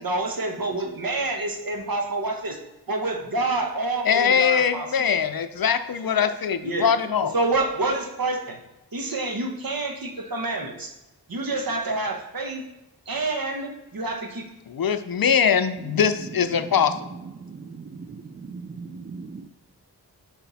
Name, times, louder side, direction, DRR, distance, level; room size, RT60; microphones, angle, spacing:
voice 1, 0.0-2.6 2.9-4.9 6.0-6.3 6.6-6.9 7.3-8.6 8.9-10.9 11.3-12.6 13.1-14.5, right 2 dB, 55° right, 3 dB, 1.2 m, -28 dB
voice 2, 4.0-7.3 14.7-17.0, left 7 dB, 55° left, 11 dB, 0.5 m, -22 dB
voice 3, 17.8-18.2 18.5-19.5, right 4 dB, 25° right, 7 dB, 0.4 m, -38 dB
6.0 x 4.3 x 4.1 m, 0.96 s
cardioid pair, 40°, 42 cm